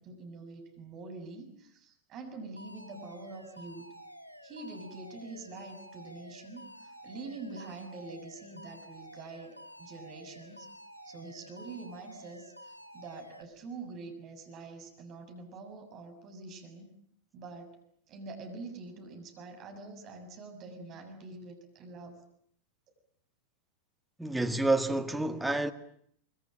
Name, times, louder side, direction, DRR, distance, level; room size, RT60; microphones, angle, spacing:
voice 1, 0.0-3.8 4.4-10.7 11.0-16.9 17.3-17.8 18.1-22.2, right 3 dB, 35° right, 6.9 m, -45 dB
Alarm, 2.6-13.4, equal, 85° left, 3.6 m, -50 dB
voice 2, 24.2-25.7, right 2 dB, 5° right, 1.9 m, -28 dB
25.0 x 23.5 x 8.8 m
figure-of-eight pair, 90°, 0 cm